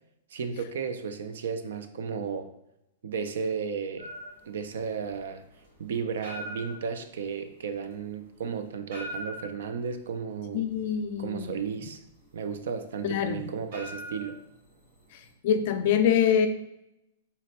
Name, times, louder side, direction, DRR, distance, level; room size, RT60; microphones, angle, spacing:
voice 1, 0.3-2.5 3.0-4.1 4.5-5.4 5.8-10.7 11.2-12.0 12.3-14.4, right 6 dB, 75° right, 9 dB, 0.3 m, -34 dB
sound 1, 4.0-15.3, equal, 60° right, 1.2 m, -44 dB
voice 2, 10.5-11.6 13.0-13.4 15.4-16.5, left 8 dB, 55° left, 8 dB, 0.3 m, -24 dB
3.9 x 2.1 x 2.8 m, 0.83 s
hypercardioid pair, 135°, 0 cm